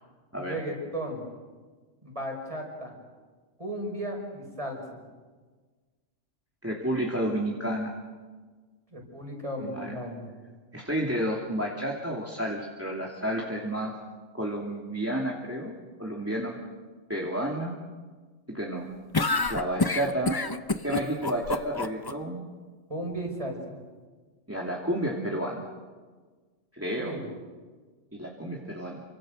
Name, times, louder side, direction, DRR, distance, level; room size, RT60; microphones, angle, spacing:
voice 1, 0.3-1.2 2.0-2.9 3.6-5.0 8.9-10.3 22.9-23.8 27.0-27.2, right 1 dB, 25° right, 2 dB, 5.7 m, -35 dB
voice 2, 6.6-7.9 9.6-10.0 10.7-13.9 14.3-15.7 16.0-16.6 17.1-17.7 18.5-18.9 19.5-20.4 20.8-22.4 24.5-25.7 26.7-27.1 28.1-29.0, right 1 dB, 10° right, -2 dB, 2.8 m, -31 dB
sound 1, 19.1-22.1, left 3 dB, 25° left, 0.6 m, -27 dB
29.0 x 25.5 x 6.5 m, 1.4 s
omnidirectional pair, 1.3 m